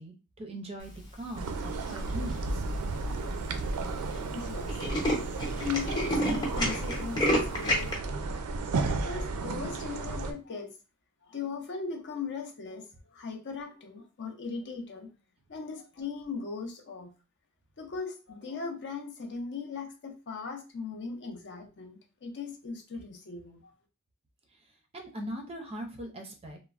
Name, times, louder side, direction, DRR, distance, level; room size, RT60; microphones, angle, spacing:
voice 1, 0.0-2.6 24.9-26.6, right 1 dB, 25° right, 3 dB, 0.4 m, -40 dB
sound 1, 1.4-10.3, right 3 dB, 80° right, 0.4 m, -33 dB
Tools, 1.9-2.3 2.9-3.0 3.2-3.3 3.6-3.8 4.1-4.2 4.5-7.9, equal, 20° left, 0.7 m, -29 dB
voice 2, 3.9-4.8 5.6-8.4 8.9-10.7 11.2-15.1 15.5-17.1 17.8-23.7, left 5 dB, 50° left, 4 dB, 0.6 m, -39 dB
3.2 x 2.0 x 2.4 m, 0.33 s
head